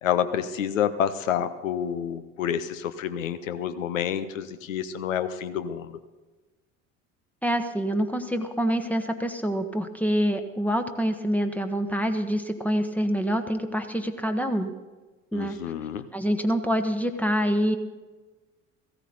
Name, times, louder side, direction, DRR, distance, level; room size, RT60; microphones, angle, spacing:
voice 1, 0.0-6.0 15.3-16.1, left 9 dB, 75° left, 12 dB, 0.8 m, -28 dB
voice 2, 7.4-14.7 15.3-15.6 16.1-17.8, equal, 5° left, 6 dB, 1.0 m, -26 dB
15.5 x 14.5 x 4.0 m, 1.3 s
figure-of-eight pair, 55°, 40 cm